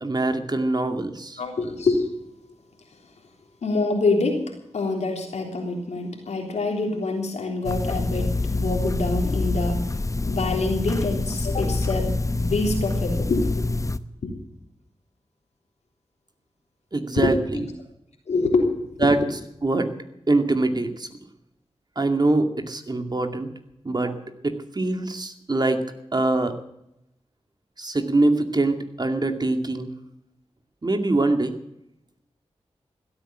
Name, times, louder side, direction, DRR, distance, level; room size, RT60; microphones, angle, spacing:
voice 1, 0.0-1.4 16.9-17.6 19.0-19.2 19.6-19.9 20.3-21.1 22.0-23.5 23.8-24.2 24.4-25.8 26.1-26.5 27.8-29.9 30.8-31.5, right 2 dB, 40° right, 6 dB, 2.2 m, -23 dB
voice 2, 1.4-2.1 3.6-4.4 4.7-9.8 10.2-13.8 14.2-14.4 17.2-17.6 18.3-18.7 19.0-19.1, left 3 dB, 85° left, 2 dB, 3.5 m, -25 dB
sound 1, 7.6-14.0, left 2 dB, 30° left, 0.8 m, -26 dB
16.5 x 9.0 x 9.2 m, 0.84 s
cardioid pair, 45°, 11 cm